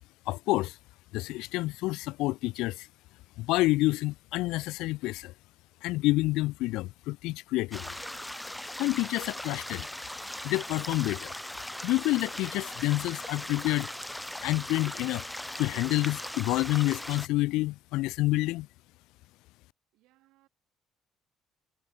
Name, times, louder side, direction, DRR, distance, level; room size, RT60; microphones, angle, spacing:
voice 1, 0.3-0.8 1.1-2.9 3.4-5.3 5.8-8.0 8.8-9.9 10.4-11.3 11.8-13.9 14.4-15.2 15.6-18.7, left 19 dB, 70° left, 0.3 m, -28 dB
sound 1, 7.7-17.3, left 1 dB, 5° left, 1.6 m, -39 dB
Trumpet, 9.1-13.9, right 6 dB, 40° right, 6.6 m, -66 dB
voice 2, 19.9-20.5, right 18 dB, 70° right, 7.3 m, -66 dB
hypercardioid pair, 50°, 0 cm